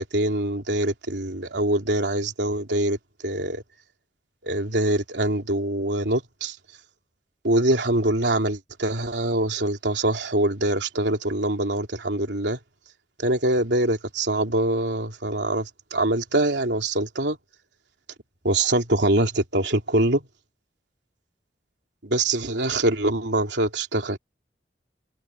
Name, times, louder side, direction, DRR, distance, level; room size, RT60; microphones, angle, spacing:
voice 1, 0.0-3.0 3.2-3.6 4.4-6.6 7.4-12.6 13.2-17.4 18.4-20.2 22.0-24.2, right 1 dB, 85° right, 3.1 m, -24 dB
head